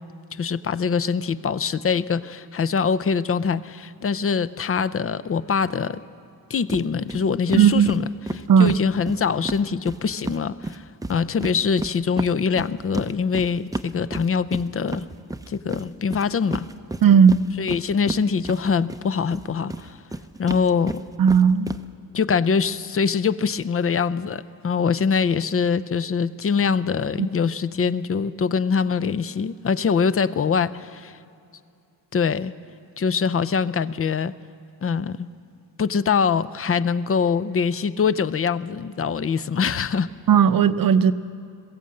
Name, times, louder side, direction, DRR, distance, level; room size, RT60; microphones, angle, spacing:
voice 1, 0.3-6.0 6.5-8.0 8.3-15.1 15.5-16.7 17.6-20.0 20.4-21.0 22.1-31.2 32.1-32.5 33.0-34.3 34.8-35.3 35.8-40.1, left 6 dB, 35° left, 16 dB, 0.5 m, -23 dB
sound 1, 6.7-6.8 7.1-7.2 7.5-10.4 10.6-19.0 19.3-21.8, right 2 dB, 10° right, 0.6 m, -32 dB
voice 2, 7.5-7.9 8.5-8.8 17.0-17.4 21.2-21.7 27.2-27.3 40.3-41.1, right 7 dB, 60° right, 12 dB, 0.7 m, -15 dB
21.5 x 16.0 x 7.6 m, 2.5 s
cardioid pair, 100°, 38 cm